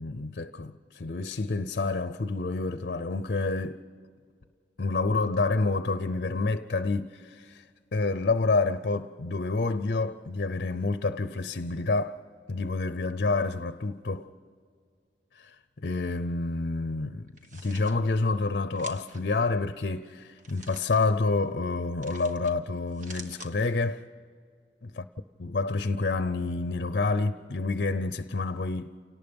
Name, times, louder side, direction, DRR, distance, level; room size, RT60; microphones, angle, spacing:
voice 1, 0.0-3.8 4.8-7.7 7.9-12.2 12.5-14.3 15.4-17.3 17.5-24.0 24.8-25.0 25.4-28.9, left 3 dB, 55° left, 0.6 m, -28 dB
sound 1, 17.3-17.9 18.8-19.2 20.4-21.0 22.0-22.5 22.9-23.5, right 3 dB, 45° right, 1.7 m, -47 dB
29.0 x 18.5 x 5.3 m
head